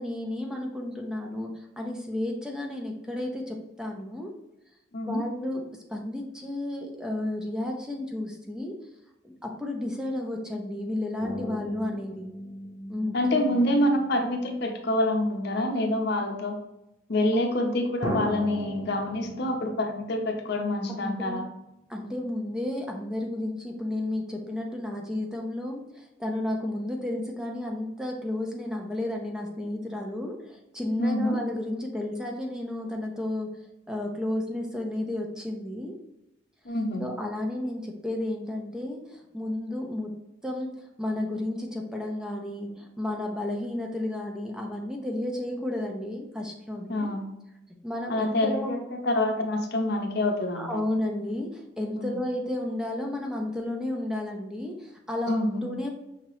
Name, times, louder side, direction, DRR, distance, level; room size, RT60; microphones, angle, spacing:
voice 1, 0.0-4.3 5.0-5.6 5.9-8.8 9.2-12.3 12.9-13.6 19.2-19.4 20.9-21.4 21.9-33.6 33.9-36.0 37.0-40.2 40.4-47.1 47.8-48.7 50.5-55.9, left 1 dB, 5° right, 0 dB, 0.5 m, -32 dB
sound 1, 11.2-15.1 16.0-16.1 18.0-21.3 21.6-21.7, left 1 dB, 20° right, 0.9 m, -37 dB
voice 2, 13.1-16.6 17.1-21.5 31.0-31.4 36.6-37.0 46.9-47.2 48.1-50.7 51.9-52.2 55.3-55.7, left 1 dB, 60° left, 3 dB, 0.7 m, -26 dB
5.7 x 2.9 x 3.0 m, 0.91 s
head